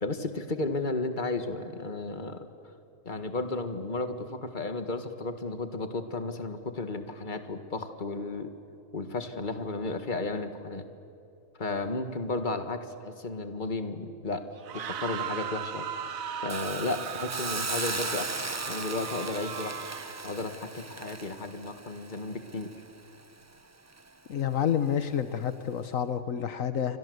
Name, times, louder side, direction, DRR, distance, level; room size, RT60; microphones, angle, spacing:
voice 1, 0.0-2.4 3.1-8.5 8.9-10.8 11.6-14.4 14.7-15.9 16.4-18.3 18.7-19.7 20.2-22.7, left 3 dB, 35° left, 8 dB, 1.9 m, -33 dB
sound 1, 14.6-20.3, right 8 dB, 85° right, 1.4 m, -37 dB
Hiss, 16.5-23.5 23.9-24.1, right 3 dB, 20° right, 0.4 m, -37 dB
voice 2, 24.3-27.0, left 9 dB, 75° left, 11 dB, 1.4 m, -29 dB
29.5 x 24.5 x 8.0 m, 2.7 s
omnidirectional pair, 1.4 m